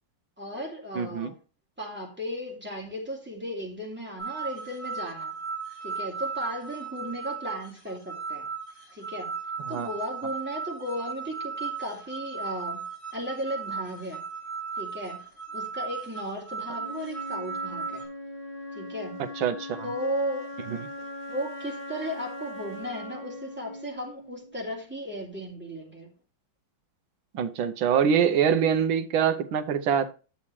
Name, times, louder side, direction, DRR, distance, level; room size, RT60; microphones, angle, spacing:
voice 1, 0.4-1.3 1.8-5.3 5.8-8.5 8.9-9.3 9.7-12.8 13.1-14.2 14.8-15.2 15.5-18.0 18.7-19.2 19.8-20.5 21.0-26.1, equal, 5° right, 2.6 m, -35 dB
voice 2, 1.0-1.3 9.7-9.9 19.4-19.9 27.3-30.1, right 8 dB, 80° right, 1.6 m, -24 dB
sound 1, 4.2-18.0, right 5 dB, 75° left, 5.1 m, -36 dB
Wind instrument woodwind instrument, 16.7-24.8, left 1 dB, 45° left, 1.7 m, -40 dB
9.8 x 7.1 x 3.1 m
omnidirectional pair, 2.2 m